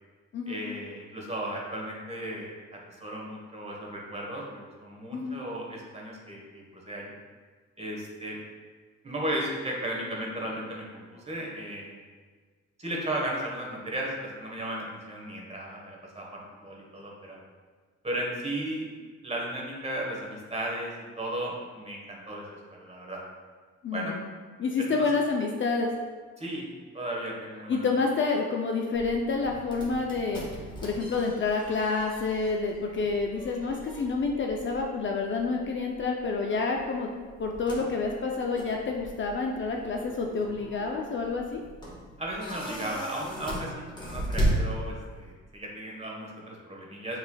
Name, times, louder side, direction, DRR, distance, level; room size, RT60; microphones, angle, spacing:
voice 1, 0.5-7.1 7.8-8.4 9.0-12.0 12.8-17.4 18.0-18.9 19.2-20.9 21.2-22.4 22.7-23.2 23.9-24.2 24.8-25.0 26.4-26.6 26.9-27.8 42.2-47.2, right 1 dB, 20° right, -2 dB, 1.2 m, -35 dB
voice 2, 23.8-24.3 24.6-25.9 27.7-30.4 30.8-37.1 37.4-41.6, left 4 dB, 40° left, 1 dB, 0.5 m, -28 dB
sound 1, 28.9-45.3, right 1 dB, 15° left, 1.3 m, -36 dB
7.2 x 3.3 x 2.3 m, 1.5 s
cardioid pair, 90°, 30 cm